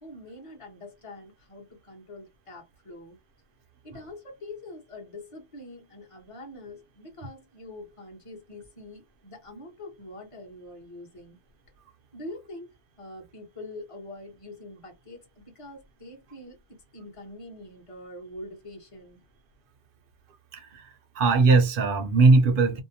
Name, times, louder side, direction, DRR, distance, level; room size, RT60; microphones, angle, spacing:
voice 1, 0.0-3.2 3.8-11.4 12.1-12.7 13.0-19.2, left 1 dB, 30° left, 1.0 m, -44 dB
voice 2, 20.5-22.8, right 3 dB, 60° right, 0.7 m, -20 dB
2.7 x 2.1 x 2.6 m
omnidirectional pair, 1.1 m